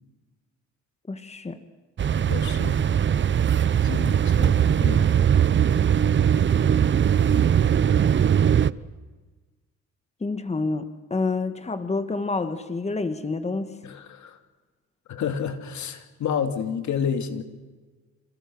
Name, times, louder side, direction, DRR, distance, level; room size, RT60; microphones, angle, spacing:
voice 1, 1.1-1.6 10.2-13.8, left 3 dB, 20° left, 9 dB, 1.8 m, -28 dB
sound 1, 2.0-8.7, right 8 dB, 40° right, 0.7 m, -20 dB
voice 2, 2.3-2.8 3.8-5.1 13.8-14.4 15.1-17.4, left 7 dB, 70° left, 7 dB, 2.7 m, -30 dB
29.0 x 28.0 x 6.4 m, 1.3 s
cardioid pair, 90°, 30 cm